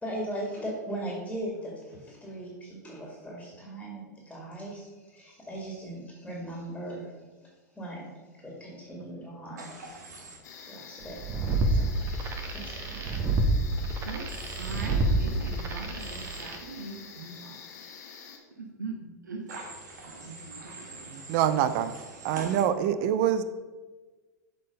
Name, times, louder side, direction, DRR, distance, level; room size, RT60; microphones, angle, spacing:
voice 1, 0.0-7.1 7.8-8.1 8.4-10.0 10.7-12.0 12.5-13.1, right 1 dB, 5° left, -3 dB, 2.3 m, -39 dB
Human voice / Train, 9.6-10.4 14.3-14.8 16.0-16.4 19.5-22.6, right 2 dB, 70° right, 1.7 m, -44 dB
sound 1, 10.4-18.4, left 6 dB, 70° left, 1.3 m, -47 dB
sound 2, 11.1-16.6, right 2 dB, 30° right, 1.1 m, -29 dB
voice 2, 14.6-17.6 18.6-19.6 20.0-21.2 22.3-22.6, right 3 dB, 90° right, 3 dB, 0.9 m, -41 dB
voice 3, 21.3-21.9 22.2-23.4, right 10 dB, 50° right, 12 dB, 0.5 m, -25 dB
7.3 x 4.5 x 5.3 m, 1.3 s
hypercardioid pair, 100°, 9 cm